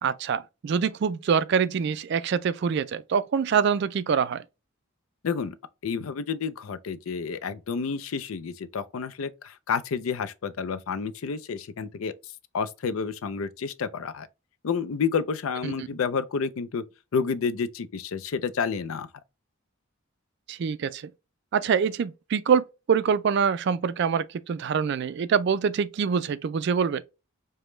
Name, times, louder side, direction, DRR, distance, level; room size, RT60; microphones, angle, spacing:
voice 1, 0.0-4.4 15.6-15.7 20.5-21.1 21.5-27.0, right 6 dB, 55° right, 0.3 m, -25 dB
voice 2, 5.2-5.6 5.8-12.1 12.5-14.3 14.6-16.8 17.1-19.1, left 5 dB, 75° left, 0.4 m, -30 dB
5.1 x 2.1 x 3.1 m
head